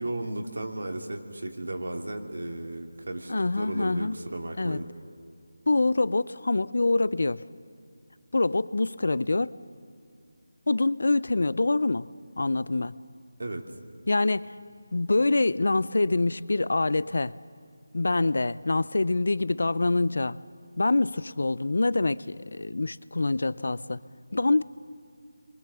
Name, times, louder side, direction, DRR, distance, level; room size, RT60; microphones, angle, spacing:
voice 1, 0.0-4.9 13.4-13.6, right 1 dB, 85° right, 3 dB, 2.7 m, -34 dB
voice 2, 3.3-4.2 4.6-4.8 5.7-7.4 8.3-9.5 10.7-12.1 12.4-13.0 14.1-14.5 14.9-17.4 17.9-20.4 20.8-24.0 24.3-24.6, left 2 dB, 65° left, 19 dB, 0.6 m, -25 dB
27.5 x 23.5 x 7.0 m, 2.4 s
figure-of-eight pair, 175°, 0 cm